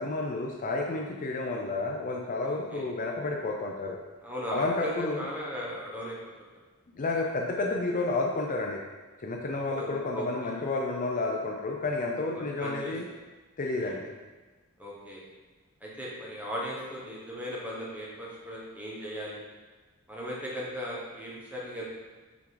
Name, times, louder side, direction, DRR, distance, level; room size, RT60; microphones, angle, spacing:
voice 1, 0.0-4.0 4.5-5.3 7.0-8.8 9.2-13.1 13.6-14.1, left 2 dB, 40° left, 0 dB, 0.5 m, -31 dB
voice 2, 2.4-2.8 4.2-6.2 9.8-10.5 12.3-13.0 13.8-14.0 14.8-15.2 15.8-19.4 20.1-21.9, equal, 5° right, -5 dB, 1.3 m, -37 dB
5.9 x 4.8 x 3.9 m, 1.3 s
head